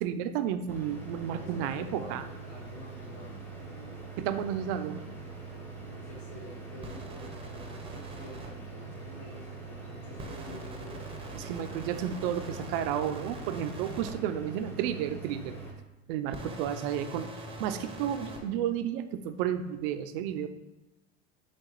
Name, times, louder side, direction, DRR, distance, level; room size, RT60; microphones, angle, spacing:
voice 1, 0.0-2.2 4.2-5.0 11.4-15.6 16.1-17.3 17.6-20.5, right 9 dB, 60° right, 10 dB, 0.4 m, -32 dB
sound 1, 0.7-15.7, right 4 dB, 5° left, 1.1 m, -43 dB
voice 2, 1.4-3.4 5.9-11.1, left 2 dB, 70° left, -3 dB, 1.1 m, -48 dB
sound 2, 6.8-8.5 10.2-14.1 16.3-18.4, right 1 dB, 15° right, 0.7 m, -44 dB
5.6 x 2.3 x 3.0 m, 1.0 s
hypercardioid pair, 90°, 32 cm